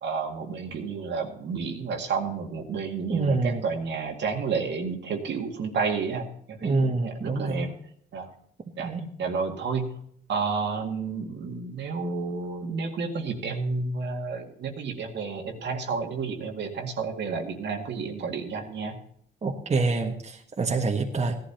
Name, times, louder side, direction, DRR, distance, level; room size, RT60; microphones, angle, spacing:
voice 1, 0.0-7.7 8.1-8.3 8.8-8.9 9.2-10.0 10.3-19.0, right 5 dB, 65° right, 3 dB, 2.0 m, -31 dB
voice 2, 3.1-3.7 6.6-7.8 8.8-9.1 19.4-21.4, right 3 dB, 35° right, 2 dB, 1.5 m, -26 dB
16.5 x 12.0 x 2.9 m, 0.66 s
cardioid pair, 90°, 20 cm